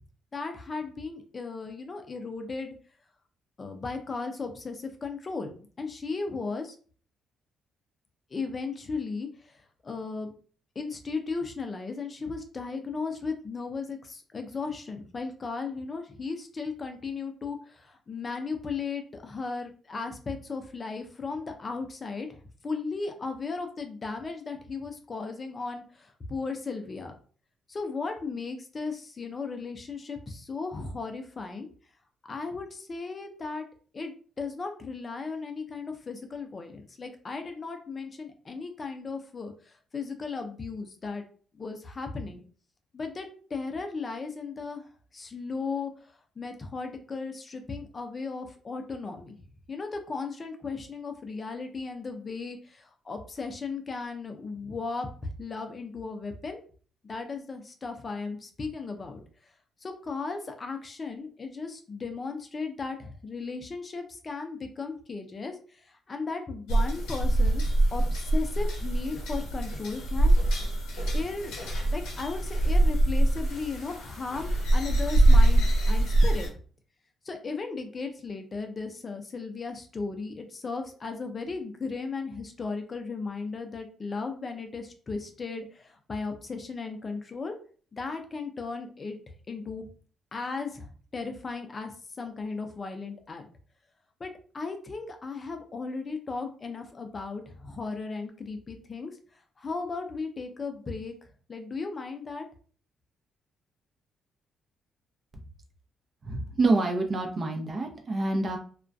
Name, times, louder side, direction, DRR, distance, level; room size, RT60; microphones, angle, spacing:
voice 1, 0.3-2.7 3.6-5.5 5.8-6.8 8.3-10.3 10.8-22.4 22.6-27.1 27.7-31.7 32.3-33.7 33.9-41.2 41.5-42.4 42.9-44.8 45.1-49.4 49.7-56.6 57.0-59.2 59.8-70.3 71.1-71.5 71.9-76.5 77.2-87.6 87.9-89.2 89.5-89.8 90.3-93.5 94.2-102.5, left 4 dB, 35° left, 6 dB, 0.5 m, -36 dB
sound 1, 66.7-76.5, right 1 dB, 90° left, 0.9 m, -24 dB
voice 2, 106.2-108.6, right 2 dB, 40° right, 3 dB, 0.6 m, -27 dB
2.3 x 2.1 x 2.5 m, 0.42 s
cardioid pair, 90°, 0 cm